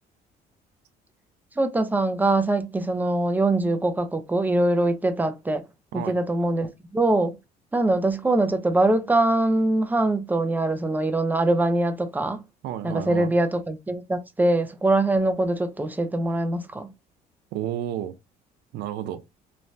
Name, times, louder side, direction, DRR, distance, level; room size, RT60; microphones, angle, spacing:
voice 1, 1.6-5.6 5.9-7.3 7.7-12.4 12.8-16.9, right 2 dB, 10° right, 0.4 m, -23 dB
voice 2, 12.6-13.3 17.5-18.1 18.7-19.2, right 11 dB, 80° right, 0.5 m, -31 dB
3.1 x 2.2 x 2.5 m
cardioid pair, 110°, 17 cm